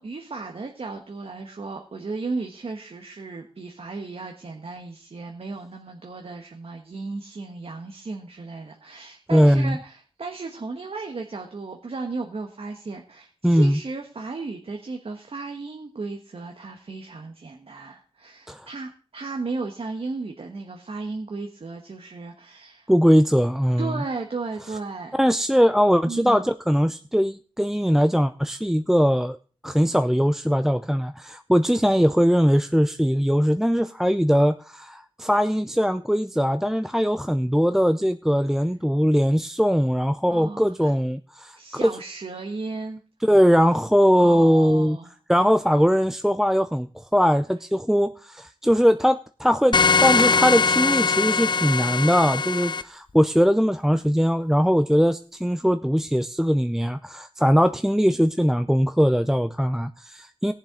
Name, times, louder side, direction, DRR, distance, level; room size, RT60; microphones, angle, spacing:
voice 1, 0.0-22.9 23.8-25.2 26.0-26.5 40.3-40.9 41.5-43.0 44.1-45.1, right 3 dB, 65° right, 3 dB, 1.3 m, -35 dB
voice 2, 9.3-9.8 13.4-13.8 18.5-18.7 22.9-24.0 25.2-29.4 29.6-41.9 43.2-45.0 45.3-60.5, equal, 5° right, 9 dB, 0.5 m, -20 dB
sound 1, 49.7-52.8, left 5 dB, 45° left, 0.6 m, -21 dB
17.5 x 7.4 x 3.8 m, 0.38 s
wide cardioid pair, 65°, 11 cm